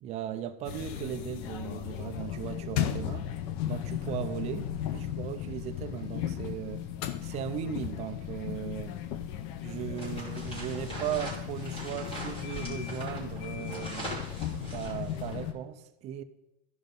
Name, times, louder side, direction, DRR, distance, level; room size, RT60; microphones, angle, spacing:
voice 1, 0.0-3.3 3.7-6.9 7.2-9.0 9.6-14.1 14.7-16.2, right 10 dB, 20° right, 0.3 m, -37 dB
sound 1, 0.6-15.5, left 10 dB, 45° left, 0.7 m, -36 dB
sound 2, 9.9-15.4, right 1 dB, 15° left, 3.3 m, -41 dB
12.5 x 5.1 x 5.2 m
supercardioid pair, 160°, 33 cm